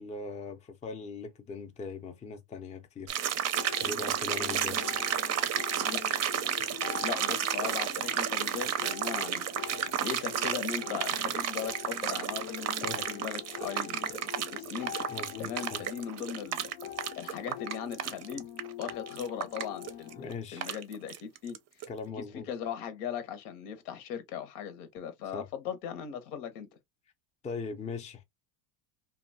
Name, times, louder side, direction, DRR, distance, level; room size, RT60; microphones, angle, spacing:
voice 1, 0.0-3.1 3.8-4.8 12.8-13.0 15.1-15.8 20.2-20.7 21.9-22.5 25.3-25.5 27.4-28.2, left 4 dB, 15° left, 0.4 m, -40 dB
sound 1, 3.1-21.6 21.8-21.9, right 9 dB, 35° right, 0.5 m, -32 dB
sound 2, 3.5-20.3, left 11 dB, 70° left, 0.6 m, -44 dB
voice 2, 7.0-16.7 17.2-18.5 18.8-20.3 20.5-21.6 22.2-26.7, left 8 dB, 85° left, 0.9 m, -39 dB
2.7 x 2.2 x 2.6 m
supercardioid pair, 110°, 45 cm